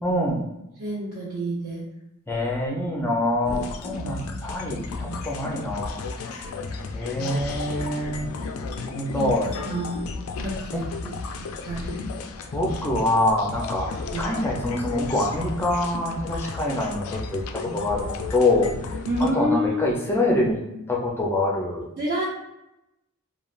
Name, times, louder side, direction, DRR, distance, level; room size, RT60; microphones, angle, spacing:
voice 1, 0.0-0.5 2.3-6.0 6.3-6.4 6.9-8.3 8.8-9.5 10.7-10.8 12.5-13.9 14.2-18.7 19.3-20.6 20.9-21.8, left 1 dB, 10° left, -2 dB, 0.5 m, -25 dB
voice 2, 0.8-1.8 9.1-9.3 9.6-10.0 10.4-10.9 11.6-11.9 14.1-14.3 19.1-19.8 22.0-22.2, equal, 50° right, -10 dB, 0.8 m, -28 dB
sound 1, 3.4-19.3, left 4 dB, 70° left, 0.3 m, -33 dB
3.2 x 2.3 x 2.4 m, 0.87 s
head